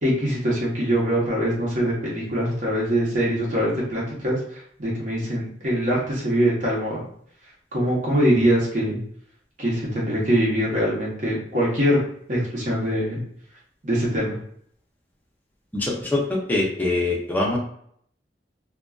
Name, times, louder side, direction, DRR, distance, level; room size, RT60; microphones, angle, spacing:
voice 1, 0.0-7.0 7.7-9.0 9.6-12.0 12.3-13.2 13.8-14.4, equal, 45° right, -5 dB, 1.0 m, -23 dB
voice 2, 15.7-16.2 16.5-17.6, left 2 dB, 10° left, -3 dB, 0.6 m, -23 dB
2.5 x 2.2 x 2.3 m, 0.65 s
head